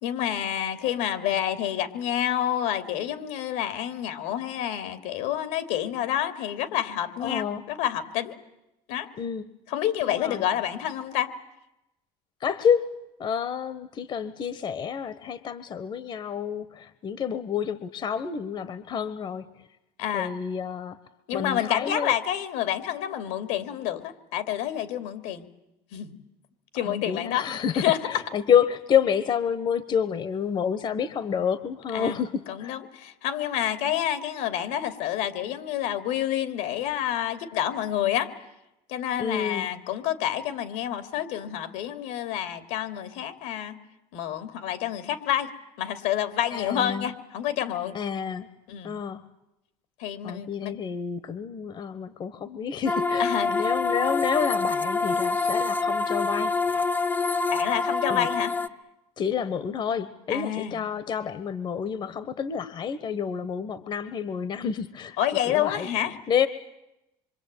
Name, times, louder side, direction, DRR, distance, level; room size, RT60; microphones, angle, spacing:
voice 1, 0.0-8.3 8.9-9.1 9.7-11.3 20.0-20.3 21.3-25.5 25.9-26.1 26.7-27.4 27.7-28.2 31.9-32.2 32.5-38.3 38.9-43.8 44.1-45.5 45.8-47.9 48.7-48.9 50.0-50.7 53.2-53.5 57.5-58.5 60.3-60.8 65.2-66.1, left 11 dB, 80° left, 10 dB, 3.0 m, -28 dB
voice 2, 7.2-7.6 9.2-9.5 10.0-10.4 12.4-12.8 13.2-19.6 20.1-21.0 21.3-22.1 26.8-32.7 39.2-39.7 46.5-47.1 47.9-48.5 48.8-49.2 50.2-56.8 58.1-58.3 59.2-65.2 65.5-65.9 66.3-66.5, left 7 dB, 40° left, 14 dB, 1.3 m, -29 dB
sound 1, 52.9-58.7, left 4 dB, 15° left, 1.0 m, -26 dB
26.0 x 25.0 x 9.1 m, 0.90 s
cardioid pair, 125°, 13 cm